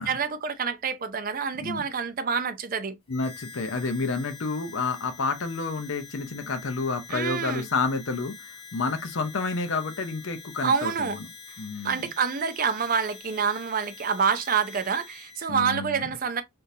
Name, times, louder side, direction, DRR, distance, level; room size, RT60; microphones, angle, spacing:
voice 1, 0.0-3.0 7.1-7.7 10.6-11.2 11.8-16.4, right 6 dB, 40° right, 0.5 m, -27 dB
voice 2, 3.1-11.3 11.6-12.0 15.5-16.1, left 4 dB, 60° left, 0.6 m, -30 dB
Harmonica, 3.1-15.5, left 5 dB, 25° left, 0.9 m, -46 dB
3.7 x 2.5 x 2.6 m
head